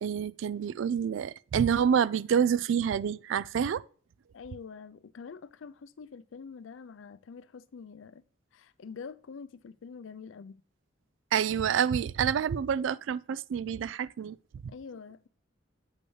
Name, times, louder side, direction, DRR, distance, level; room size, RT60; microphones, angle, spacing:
voice 1, 0.0-3.8 11.3-14.4 14.6-14.7, right 8 dB, 80° right, 0.3 m, -28 dB
voice 2, 4.3-8.2 8.5-10.6 14.7-15.3, left 5 dB, 85° left, 0.4 m, -46 dB
8.2 x 5.4 x 3.2 m
head